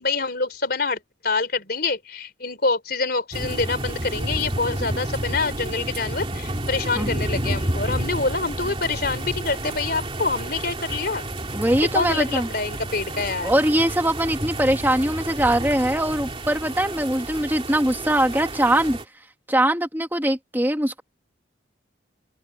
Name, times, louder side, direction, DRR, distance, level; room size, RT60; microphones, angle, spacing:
voice 1, 0.0-11.3 11.8-13.5, left 3 dB, 55° left, 3.9 m, -26 dB
sound 1, 3.3-19.0, right 1 dB, 30° right, 2.8 m, -30 dB
voice 2, 11.5-12.5 13.4-19.0 19.5-21.0, right 1 dB, 10° right, 1.8 m, -22 dB
open air
head